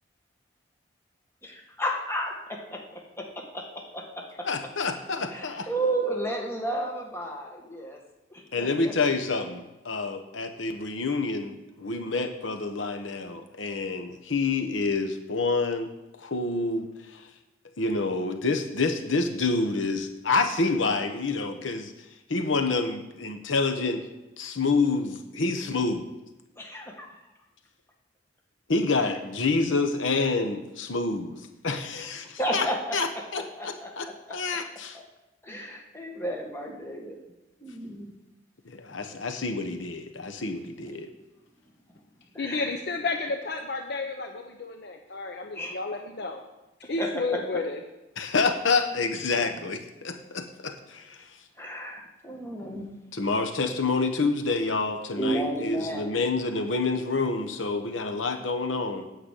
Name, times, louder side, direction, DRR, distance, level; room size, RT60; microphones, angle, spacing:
voice 1, 1.4-2.3 2.7-2.8 3.9-4.0 5.2-8.0 8.3-8.9 26.6-27.2 32.0-32.1 32.4-33.0 33.3-34.1 34.9-35.0 35.4-37.2 37.6-38.1 40.3-40.4 42.3-42.7 45.5-46.1 47.0-47.6 51.6-53.0 55.2-56.2, right 1 dB, 15° left, 0 dB, 1.6 m, -32 dB
voice 2, 4.4-5.7 8.5-15.9 16.2-17.3 17.8-21.9 22.3-24.0 24.4-26.1 28.7-32.7 32.9-33.1 33.3-35.0 38.6-41.1 48.2-51.3 53.1-59.1, left 3 dB, 90° left, 6 dB, 1.1 m, -28 dB
voice 3, 42.4-46.4 46.9-47.8, left 3 dB, 60° left, 4 dB, 0.8 m, -31 dB
8.9 x 6.1 x 8.3 m, 1.0 s
head